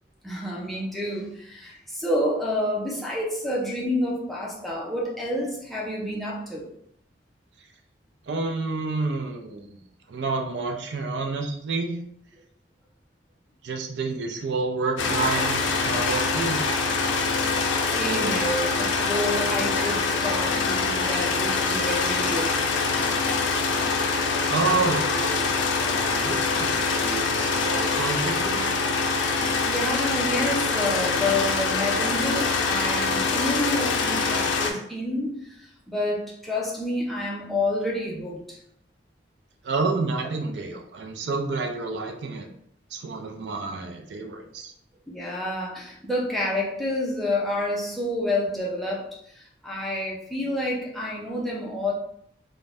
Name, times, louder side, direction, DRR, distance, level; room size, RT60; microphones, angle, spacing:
voice 1, 0.2-6.7 17.9-22.6 29.2-38.6 45.1-51.9, left 1 dB, ahead, -5 dB, 0.5 m, -29 dB
voice 2, 8.3-9.8 10.1-11.9 13.6-16.6 24.5-25.5 25.8-28.8 39.6-42.5 42.9-44.7, right 3 dB, 70° right, 3 dB, 0.4 m, -29 dB
sound 1, 15.0-34.7, left 4 dB, 90° left, 0.4 m, -24 dB
2.5 x 2.1 x 3.3 m, 0.69 s
head